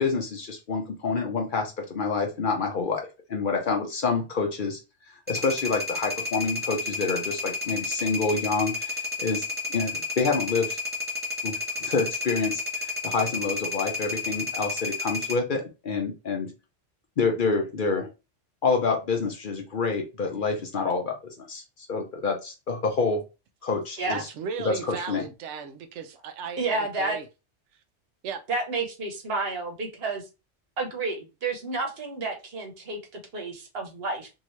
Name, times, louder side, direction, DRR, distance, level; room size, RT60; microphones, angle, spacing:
voice 1, 0.0-4.8 5.3-10.8 11.4-11.5 11.8-12.6 13.0-16.5 17.2-18.1 18.6-21.6 21.9-23.2 23.6-24.2 24.6-25.2, left 4 dB, 50° left, 0.8 m, -27 dB
sound 1, 5.3-15.4, left 3 dB, 10° right, 0.5 m, -31 dB
voice 2, 24.1-27.3 28.2-28.4, right 6 dB, 85° right, 0.9 m, -36 dB
voice 3, 26.6-27.2 28.5-30.2 30.8-34.3, right 3 dB, 60° right, 1.1 m, -30 dB
2.8 x 2.7 x 3.0 m
omnidirectional pair, 1.2 m